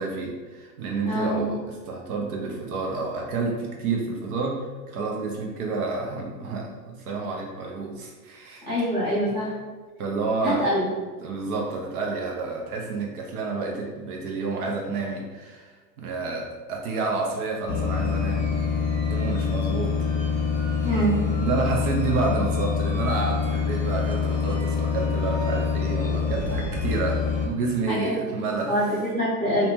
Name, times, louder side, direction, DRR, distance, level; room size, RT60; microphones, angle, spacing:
voice 1, 0.0-1.6 1.9-8.6 9.3-9.4 10.0-10.6 11.2-15.7 16.0-18.6 19.1-19.9 20.2-20.4 20.7-20.9 21.4-28.7, right 3 dB, 60° right, -1 dB, 0.7 m, -29 dB
voice 2, 1.0-1.4 8.7-9.5 10.4-10.8 20.8-21.1 27.9-28.1 28.4-29.7, equal, 10° right, -11 dB, 0.7 m, -25 dB
sound 1, 17.7-27.4, left 6 dB, 25° left, 0.5 m, -25 dB
2.7 x 2.2 x 3.0 m, 1.4 s
supercardioid pair, 160°, 49 cm